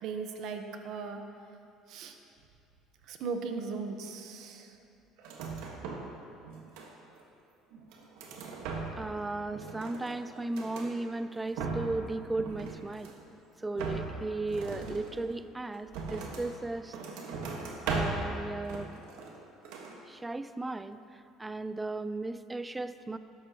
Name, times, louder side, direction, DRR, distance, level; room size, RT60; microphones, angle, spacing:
voice 1, 0.0-1.2 1.9-2.1 3.1-4.7, right 4 dB, 65° right, 5 dB, 1.0 m, -37 dB
sound 1, 5.2-6.2 6.4-7.2 7.7-9.2 9.5-10.9 11.3-12.0 12.3-13.3 13.7-16.5 16.9-18.3 18.6-19.4 19.6-20.0, right 4 dB, 80° right, 1.5 m, -38 dB
voice 2, 9.0-13.1 13.6-17.0 17.9-19.0 20.0-23.2, right 2 dB, 15° right, 12 dB, 0.4 m, -36 dB
13.0 x 11.0 x 3.0 m, 2.7 s
supercardioid pair, 105°, 0 cm